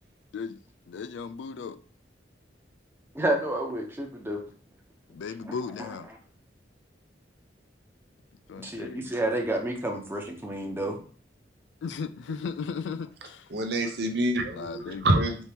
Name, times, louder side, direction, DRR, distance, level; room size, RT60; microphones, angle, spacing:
voice 1, 0.9-1.8 5.1-6.1 8.5-9.1 11.8-13.5 14.5-15.1, left 5 dB, 75° left, 0.3 m, -36 dB
voice 2, 3.1-4.4 5.4-6.2 8.6-11.0, right 1 dB, 10° right, 0.8 m, -30 dB
voice 3, 13.5-15.5, right 1 dB, 60° right, 0.7 m, -26 dB
4.3 x 2.8 x 3.5 m
head